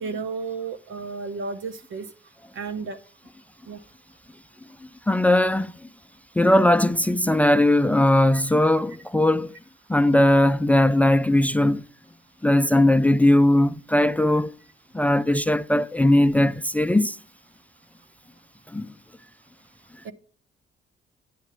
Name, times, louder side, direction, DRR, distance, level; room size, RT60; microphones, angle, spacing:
voice 1, 0.0-2.1 2.5-3.0 3.7-3.8 8.3-8.4 20.0-20.1, right 4 dB, 80° right, 1.2 m, -32 dB
voice 2, 5.1-5.7 6.4-9.5 9.9-11.8 12.4-14.5 14.9-17.2 18.7-18.9, left 1 dB, 5° left, 0.4 m, -19 dB
10.5 x 8.3 x 3.3 m
cardioid pair, 90°, 20 cm